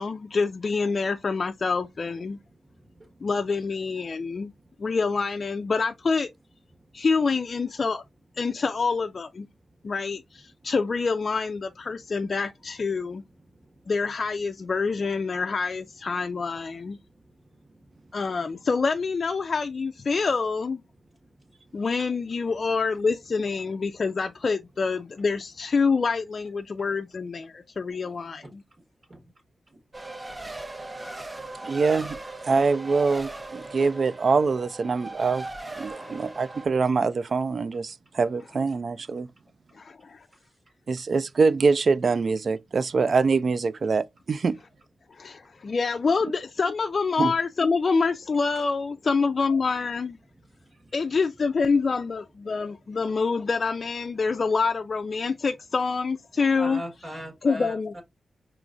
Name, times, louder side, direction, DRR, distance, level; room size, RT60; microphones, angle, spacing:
voice 1, 0.0-2.4 3.2-4.5 4.8-6.3 6.9-8.0 8.4-9.5 9.8-13.2 13.9-17.0 18.1-20.8 21.7-28.6 33.8-33.9 35.9-36.1 39.8-40.3 45.1-50.2 50.9-56.8 57.4-58.0, left 4 dB, 55° left, 0.3 m, -26 dB
Race car auto racing, 29.9-36.7, right 2 dB, 25° right, 0.7 m, -39 dB
voice 2, 31.6-32.2 32.5-35.4 35.8-37.9 38.2-39.3 40.9-44.5 47.2-47.3, right 4 dB, 60° right, 0.3 m, -24 dB
voice 3, 56.6-58.0, right 1 dB, 40° right, 1.6 m, -39 dB
4.8 x 3.0 x 2.5 m
cardioid pair, 70°, 0 cm